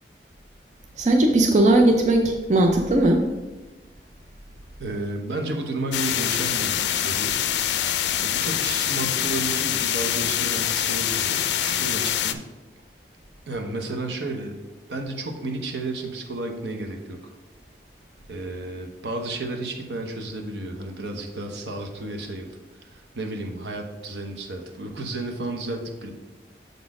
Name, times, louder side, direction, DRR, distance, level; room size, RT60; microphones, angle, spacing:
voice 1, 1.0-3.2, right 1 dB, 40° right, 3 dB, 0.5 m, -18 dB
voice 2, 4.8-7.4 8.2-12.4 13.5-14.6 14.9-17.3 18.3-22.5 22.9-26.1, right 2 dB, 80° right, 3 dB, 0.9 m, -32 dB
sound 1, 5.9-12.3, left 11 dB, 80° left, 0.4 m, -25 dB
6.7 x 4.2 x 4.8 m, 1.2 s
head